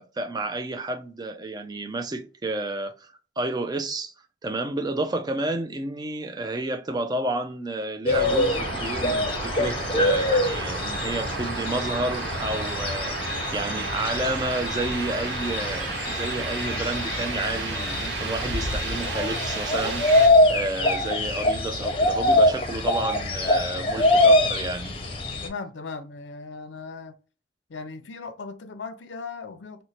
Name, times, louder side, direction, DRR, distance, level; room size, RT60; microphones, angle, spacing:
voice 1, 0.0-4.1 4.4-24.9, right 2 dB, 20° right, 0.4 m, -31 dB
sound 1, 8.1-25.5, left 1 dB, 30° left, 0.6 m, -24 dB
sound 2, 8.1-20.3, right 3 dB, 80° right, 1.0 m, -32 dB
voice 2, 25.4-27.2 27.7-29.8, left 4 dB, 85° left, 0.5 m, -37 dB
3.0 x 2.1 x 4.0 m
head